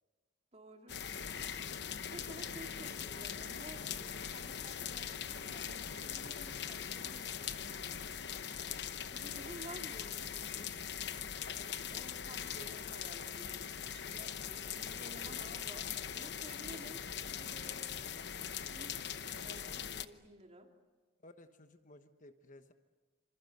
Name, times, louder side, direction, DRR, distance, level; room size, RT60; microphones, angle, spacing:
voice 1, 0.5-1.0 2.1-8.0 9.1-10.8 11.9-17.9 18.6-20.7, right 1 dB, 35° right, 3 dB, 2.7 m, -53 dB
sound 1, 0.9-20.1, left 8 dB, 65° left, 0.9 m, -41 dB
voice 2, 21.2-22.7, left 2 dB, 45° left, 8 dB, 1.2 m, -58 dB
27.0 x 26.5 x 8.0 m, 1.4 s
head